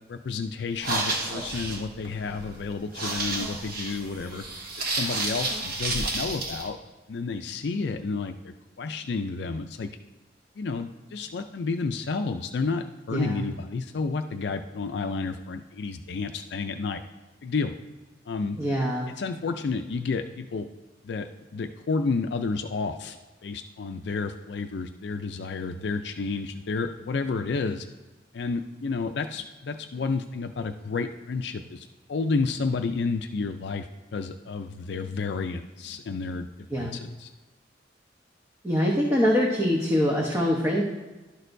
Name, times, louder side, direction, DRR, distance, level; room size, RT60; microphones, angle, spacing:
voice 1, 0.1-4.4 4.9-6.8 7.1-9.9 10.6-17.0 17.4-17.7 18.3-18.6 19.2-20.7 21.0-23.2 23.4-27.9 28.3-36.5 36.8-37.3, left 4 dB, 65° left, 6 dB, 0.4 m, -31 dB
sound 1, 0.7-6.7, right 2 dB, 55° right, 1.2 m, -31 dB
voice 2, 13.1-13.5 18.6-19.1 36.7-37.0 38.6-40.8, equal, 15° right, -2 dB, 0.9 m, -24 dB
11.5 x 6.3 x 2.6 m, 1.2 s
head